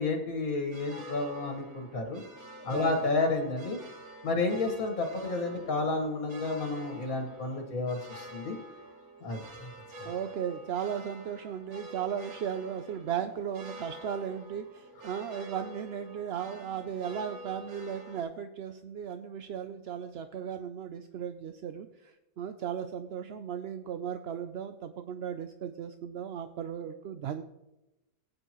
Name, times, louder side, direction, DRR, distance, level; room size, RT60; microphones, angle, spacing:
voice 1, 0.0-2.2 2.6-3.8 4.2-8.6 9.2-9.7, left 3 dB, 70° left, 3 dB, 2.0 m, -31 dB
sound 1, 0.7-18.2, right 1 dB, 80° right, 2.1 m, -48 dB
voice 2, 2.6-3.0 10.0-27.4, right 8 dB, 60° right, 8 dB, 0.7 m, -36 dB
18.0 x 9.0 x 3.0 m, 0.98 s
omnidirectional pair, 1.5 m